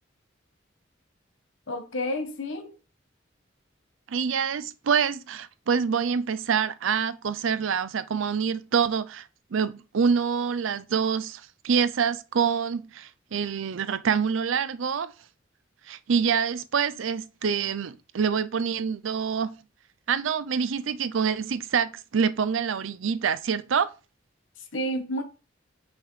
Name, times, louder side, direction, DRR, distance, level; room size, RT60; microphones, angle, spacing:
voice 1, 1.7-2.8 24.7-25.2, equal, 80° left, 1.1 m, -30 dB
voice 2, 4.1-15.1 15.9-19.5 20.1-23.9, right 6 dB, 80° right, 0.5 m, -26 dB
6.1 x 5.6 x 3.2 m
head